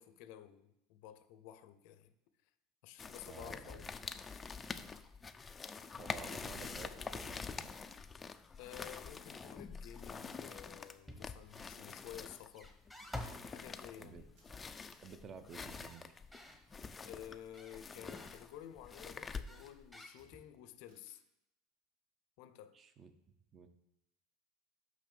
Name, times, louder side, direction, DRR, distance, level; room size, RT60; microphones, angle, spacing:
voice 1, 0.0-2.1 2.8-3.9 8.6-12.7 13.4-14.3 17.0-21.2 22.4-22.8, left 11 dB, 60° left, 0.6 m, -52 dB
sound 1, 3.0-19.9, left 5 dB, 15° left, 0.4 m, -46 dB
voice 2, 3.2-3.8 6.0-7.7 14.0-14.3 15.0-16.1 22.7-23.1 23.5-23.7, right 6 dB, 25° right, 0.6 m, -52 dB
Camera, 9.9-10.5 11.8-11.9 12.2-12.4 14.3-14.4 14.7-15.0 17.5-17.6 18.1-18.4 20.1-20.2 20.9-21.1, right 3 dB, 85° right, 2.5 m, -73 dB
sound 2, 11.1-11.5 12.5-13.5 15.5-16.6 17.5-18.4 19.5-20.6, left 1 dB, 5° right, 1.0 m, -49 dB
6.1 x 5.6 x 6.9 m
supercardioid pair, 145°, 0 cm